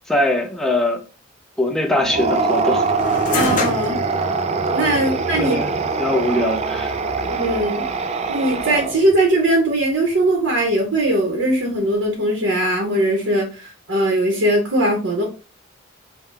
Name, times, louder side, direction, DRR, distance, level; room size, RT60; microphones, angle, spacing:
voice 1, 0.1-1.0 1.6-2.8 5.4-5.7 6.0-6.9, left 1 dB, ahead, 0.7 m, -21 dB
sound 1, 2.0-9.2, right 4 dB, 35° right, 0.4 m, -23 dB
sound 2, 3.0-12.2, left 3 dB, 40° left, 0.7 m, -32 dB
voice 2, 3.3-4.0 4.7-5.6 7.3-7.9 8.3-15.2, right 1 dB, 75° right, 1.0 m, -20 dB
5.4 x 2.2 x 3.3 m
head